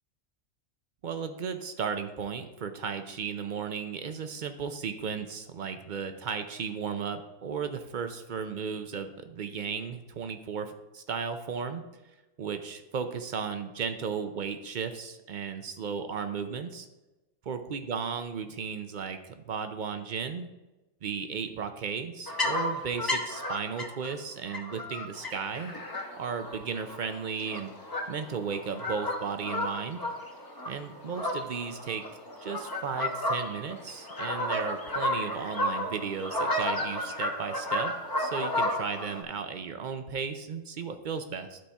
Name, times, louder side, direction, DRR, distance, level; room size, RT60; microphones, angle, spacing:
voice 1, 1.0-11.8 12.4-16.9 17.5-20.5 21.0-25.7 26.2-27.7 28.1-30.0 30.7-32.0 32.4-41.6, right 6 dB, 55° right, 8 dB, 0.5 m, -35 dB
sound 1, 22.3-24.1 24.5-39.2, left 1 dB, 20° left, 0.8 m, -32 dB
12.0 x 4.2 x 3.4 m, 1.1 s
omnidirectional pair, 1.4 m